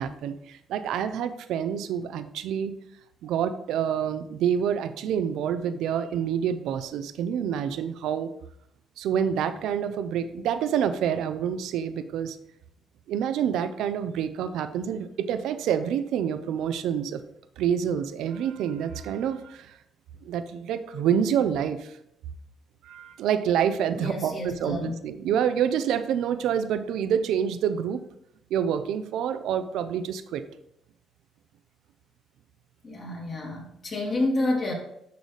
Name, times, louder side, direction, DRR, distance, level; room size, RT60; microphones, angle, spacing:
voice 1, 0.0-2.7 3.2-8.3 9.0-12.4 13.1-17.2 17.6-19.8 20.2-22.0 22.8-28.0 28.5-30.4, right 8 dB, 85° right, 11 dB, 0.5 m, -27 dB
voice 2, 24.0-25.0 32.8-34.7, left 2 dB, 45° left, -2 dB, 2.5 m, -29 dB
11.0 x 4.0 x 3.3 m, 0.78 s
cardioid pair, 90°, 0 cm